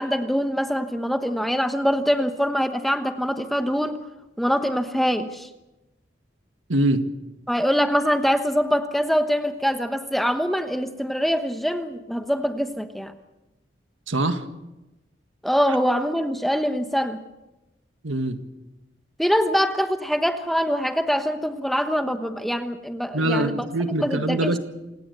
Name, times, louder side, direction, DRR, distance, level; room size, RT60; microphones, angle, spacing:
voice 1, 0.0-4.0 4.4-5.5 7.5-13.1 15.4-17.2 19.2-23.6 24.0-24.6, equal, ahead, 8 dB, 1.1 m, -24 dB
voice 2, 6.7-7.0 14.1-14.4 18.0-18.4 23.1-24.6, right 1 dB, 85° right, 8 dB, 1.8 m, -23 dB
27.5 x 17.5 x 6.9 m, 1.0 s
head